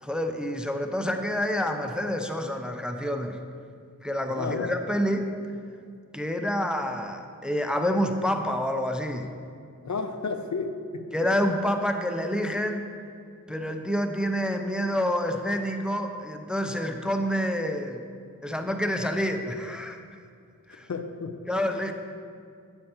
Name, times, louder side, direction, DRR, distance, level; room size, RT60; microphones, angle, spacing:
voice 1, 0.0-3.4 4.0-5.3 6.1-9.3 11.1-12.9 13.5-18.0 18.4-20.0 20.7-20.9 21.5-21.9, equal, 5° right, 5 dB, 0.5 m, -28 dB
voice 2, 4.3-4.8 9.8-11.1 20.9-21.4, left 4 dB, 60° left, 6 dB, 0.6 m, -32 dB
8.7 x 7.7 x 2.9 m, 2.3 s
wide cardioid pair, 45°, 33 cm